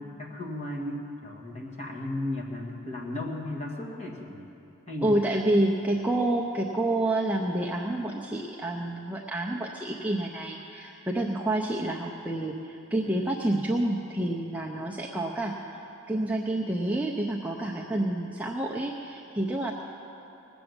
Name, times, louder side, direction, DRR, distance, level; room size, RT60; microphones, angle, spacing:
voice 1, 0.0-4.5 4.9-5.1, left 1 dB, 30° left, -1 dB, 1.7 m, -35 dB
voice 2, 5.0-19.7, right 1 dB, 5° right, -2 dB, 0.5 m, -28 dB
19.0 x 7.0 x 7.9 m, 2.9 s
head